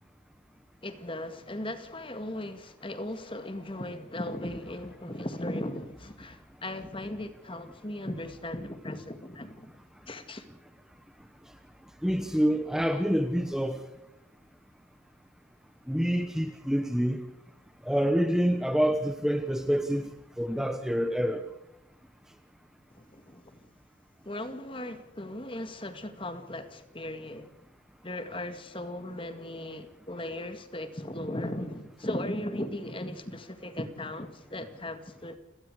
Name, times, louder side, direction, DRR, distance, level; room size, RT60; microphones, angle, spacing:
voice 1, 0.8-9.7 10.1-10.5 22.9-23.6 24.2-27.5 28.0-35.4, left 1 dB, 25° left, 2.0 m, -37 dB
voice 2, 12.0-13.8 15.9-17.2 17.8-20.1 20.4-21.4, equal, 5° right, 1.0 m, -27 dB
30.0 x 18.0 x 4.9 m
head